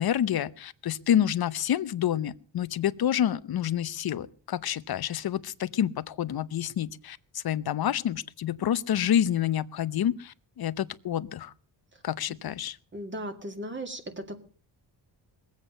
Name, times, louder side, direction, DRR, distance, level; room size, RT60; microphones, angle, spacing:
voice 1, 0.0-11.5 12.0-12.8, left 10 dB, 55° left, 16 dB, 0.8 m, -28 dB
voice 2, 12.9-14.4, right 1 dB, 25° right, 6 dB, 2.4 m, -37 dB
20.5 x 8.1 x 6.6 m, 0.42 s
cardioid pair, 100°, 43 cm